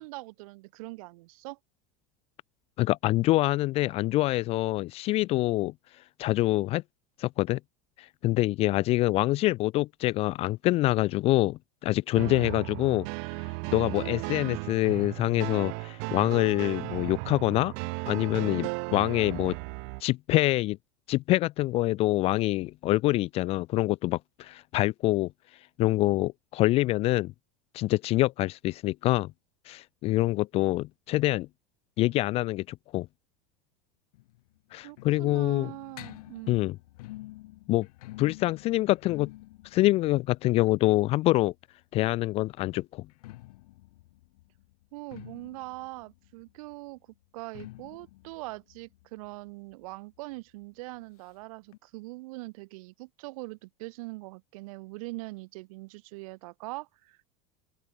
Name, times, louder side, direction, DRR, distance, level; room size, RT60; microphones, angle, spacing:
voice 1, 0.0-1.6 34.8-36.7 44.9-47.0 47.3-57.2, right 23 dB, 70° right, 3.1 m, -42 dB
voice 2, 2.8-5.7 6.2-6.8 7.2-7.6 8.0-13.1 13.7-17.7 18.1-19.6 20.0-20.8 21.1-25.3 25.8-27.3 27.7-29.3 29.7-31.5 32.0-33.1 34.7-35.7 36.5-36.8 37.7-37.9 38.2-39.3 39.6-41.5 41.9-43.1, left 18 dB, 30° left, 0.5 m, -25 dB
sound 1, 12.1-20.0, right 40 dB or more, 50° right, 0.7 m, -35 dB
sound 2, 34.1-41.8 43.0-50.3 50.6-50.7 51.0-51.1 51.7-51.8, left 18 dB, 80° left, 3.2 m, -49 dB
open air
supercardioid pair, 165°, 19 cm